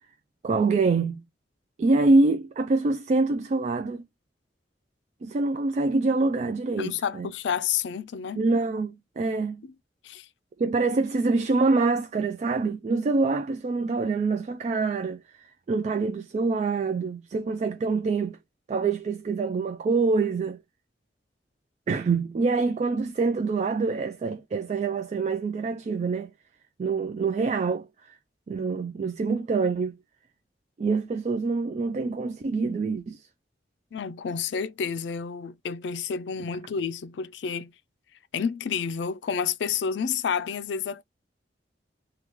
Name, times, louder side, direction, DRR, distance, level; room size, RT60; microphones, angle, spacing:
voice 1, 0.4-1.2 1.8-4.0 5.2-7.3 8.4-9.6 10.6-15.2 15.7-18.4 18.7-20.6 21.9-26.3 26.8-27.9 28.5-29.9 30.8-33.2, right 3 dB, 40° right, 0.3 m, -25 dB
voice 2, 6.8-8.4 9.6-9.7 10.0-10.3 33.9-37.7 38.3-41.0, left 7 dB, 80° left, 0.4 m, -30 dB
3.0 x 2.3 x 3.3 m
head